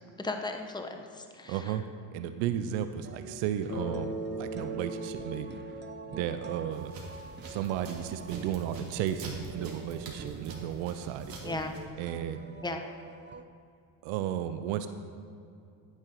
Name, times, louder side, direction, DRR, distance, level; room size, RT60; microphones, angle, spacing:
voice 1, 0.2-1.8 11.4-11.7 12.6-12.8, left 2 dB, 10° left, 5 dB, 1.0 m, -36 dB
voice 2, 1.5-1.8 2.1-5.6 6.1-6.9 7.5-11.3 12.0-12.4 14.0-14.9, right 10 dB, 85° right, 10 dB, 0.7 m, -34 dB
sound 1, 3.0-13.4, right 4 dB, 25° right, 0.6 m, -46 dB
Bass guitar, 3.7-7.7, right 1 dB, 35° left, 2.7 m, -40 dB
sound 2, 6.7-11.8, right 2 dB, 50° right, 2.8 m, -46 dB
10.0 x 9.7 x 4.6 m, 2.6 s
supercardioid pair, 80°, 45 cm